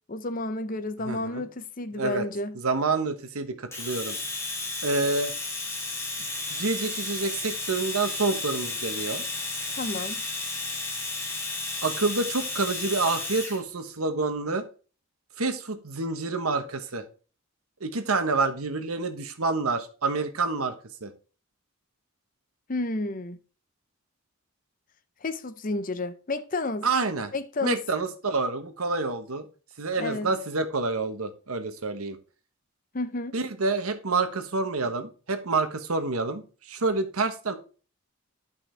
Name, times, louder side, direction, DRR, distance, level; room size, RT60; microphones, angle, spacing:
voice 1, 0.1-2.6 9.7-10.2 22.7-23.4 25.2-26.9 27.3-27.8 30.0-30.3 32.9-33.3, left 2 dB, 40° left, 0.7 m, -31 dB
voice 2, 1.0-1.5 1.9-2.2 2.5-4.2 4.8-5.3 6.5-9.2 11.8-14.6 15.4-17.0 17.8-20.7 21.0-21.1 26.8-27.3 27.6-29.5 29.8-32.2 33.3-37.6, right 3 dB, 85° right, 1.2 m, -28 dB
Domestic sounds home sounds, 3.7-13.6, left 3 dB, 10° left, 2.8 m, -33 dB
11.5 x 5.6 x 3.4 m
head